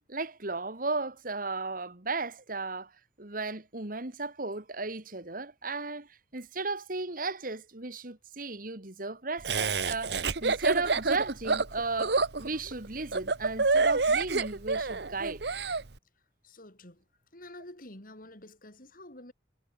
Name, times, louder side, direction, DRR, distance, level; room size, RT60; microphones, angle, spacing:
voice 1, 0.1-2.9 3.2-15.4, right 3 dB, 50° right, 2.3 m, -35 dB
Laughter, 9.4-15.8, right 4 dB, 65° right, 1.2 m, -27 dB
voice 2, 16.4-17.0 17.3-19.3, left 1 dB, 50° left, 4.4 m, -48 dB
head